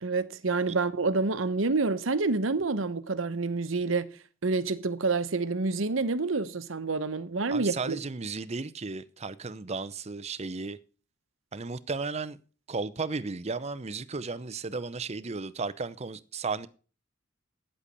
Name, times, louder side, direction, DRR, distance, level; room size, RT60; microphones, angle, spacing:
voice 1, 0.0-4.2 4.4-8.0, right 3 dB, 90° right, 1.0 m, -28 dB
voice 2, 7.5-10.8 11.5-12.4 12.7-16.7, right 4 dB, 35° right, 0.7 m, -34 dB
9.9 x 8.0 x 6.8 m
head